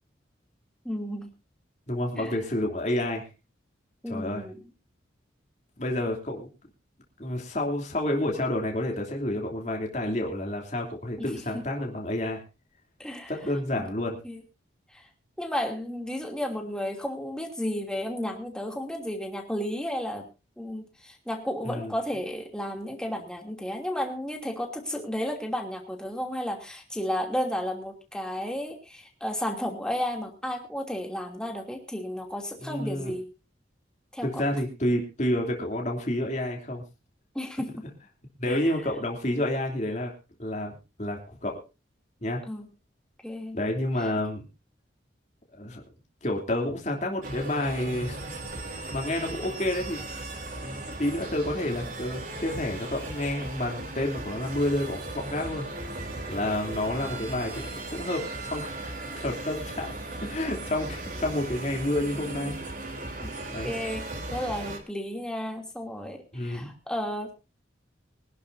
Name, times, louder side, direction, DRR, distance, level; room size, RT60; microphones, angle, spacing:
voice 1, 0.8-1.3 2.2-2.3 4.0-4.6 11.2-11.7 13.0-13.3 13.7-13.9 14.2-14.4 14.9-15.1 15.4-20.3 20.6-33.3 34.1-34.4 37.3-37.9 38.5-38.7 42.5-42.7 43.2-43.6 44.0-44.1 63.2-63.3 63.6-67.3, equal, 5° left, 2 dB, 2.8 m, -33 dB
voice 2, 1.9-3.2 4.1-4.4 5.8-6.5 7.2-12.4 13.3-14.2 21.6-21.9 32.6-33.1 34.2-36.8 38.4-40.1 40.4-41.6 42.2-42.4 43.5-44.5 45.5-45.8 46.2-48.2 48.9-50.0 50.5-55.6 56.3-58.7 59.2-62.7 63.5-63.7 66.3-66.7, left 1 dB, 40° left, 1 dB, 3.1 m, -29 dB
sound 1, 47.2-64.8, right 2 dB, 45° right, 3.5 m, -37 dB
24.0 x 11.5 x 2.7 m, 0.30 s
head